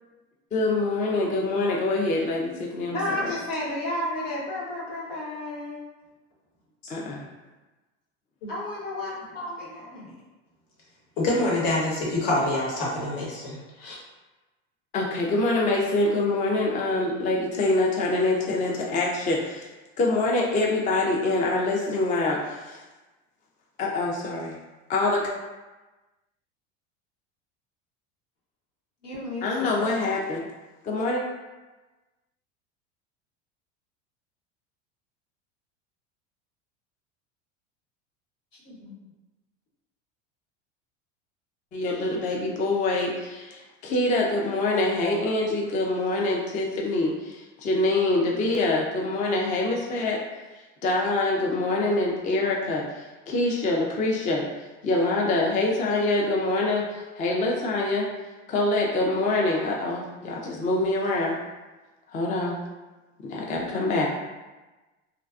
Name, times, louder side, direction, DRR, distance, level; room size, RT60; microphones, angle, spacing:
voice 1, 0.5-3.3 6.9-7.2 14.9-19.7 20.0-22.8 23.8-24.6 24.9-25.2 29.4-30.4 30.8-31.2 41.7-50.2 50.8-54.4 54.8-58.1 58.5-61.3 62.1-62.6 63.3-64.1, left 2 dB, 20° left, -2 dB, 0.4 m, -25 dB
voice 2, 2.9-6.0 8.5-10.1 29.0-30.1 38.6-38.9, left 1 dB, 90° left, -7 dB, 1.0 m, -32 dB
voice 3, 11.2-14.0, left 1 dB, 60° left, -4 dB, 1.0 m, -26 dB
2.5 x 2.2 x 2.4 m, 1.2 s
hypercardioid pair, 85°, 36 cm